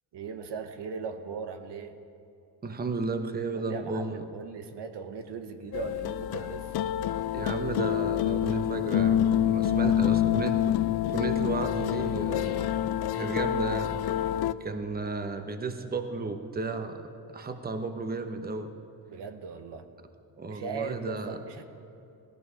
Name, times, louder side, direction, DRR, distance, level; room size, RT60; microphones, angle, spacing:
voice 1, 0.1-2.0 3.5-6.8 9.7-10.3 19.1-19.9 20.5-21.6, right 5 dB, 70° right, 8 dB, 1.1 m, -39 dB
voice 2, 2.6-4.2 7.3-10.6 11.1-12.7 13.1-13.9 14.6-18.7 20.4-21.4, right 3 dB, 20° right, 7 dB, 1.0 m, -33 dB
sound 1, 5.7-14.5, left 11 dB, 60° left, 0.5 m, -27 dB
17.0 x 14.0 x 5.7 m, 2.7 s
cardioid pair, 110°, 43 cm